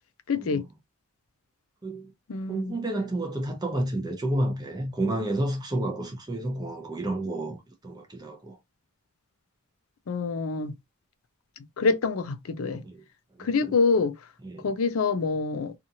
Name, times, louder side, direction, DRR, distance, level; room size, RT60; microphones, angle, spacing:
voice 1, 0.3-0.6 2.3-2.8 10.1-10.7 11.8-12.8 13.4-14.2 14.6-15.7, left 4 dB, 70° left, 0.4 m, -26 dB
voice 2, 1.8-2.1 2.5-8.6 12.7-13.0 13.4-13.7 14.4-14.7, right 1 dB, 20° right, 0.6 m, -31 dB
2.8 x 2.4 x 2.6 m
head